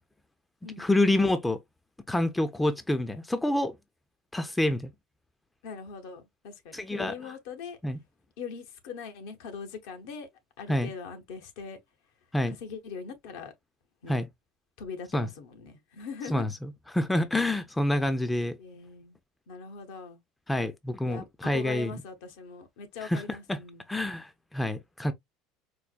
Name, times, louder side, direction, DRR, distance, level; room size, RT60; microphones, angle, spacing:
voice 1, 0.8-1.6 2.1-3.7 4.3-4.9 6.7-7.1 7.8-8.0 10.7-10.9 12.3-12.5 14.1-14.3 15.1-15.3 16.3-16.5 16.9-18.6 20.5-21.9 23.1-23.2 23.5-23.6 23.9-25.1, left 1 dB, 10° left, 0.5 m, -27 dB
voice 2, 5.6-7.8 8.4-10.3 10.6-11.8 12.5-13.5 14.0-14.2 14.8-16.5 18.6-19.2 19.5-20.2 21.0-23.8, left 5 dB, 75° left, 0.9 m, -41 dB
4.5 x 2.1 x 2.4 m
supercardioid pair, 95°, 0 cm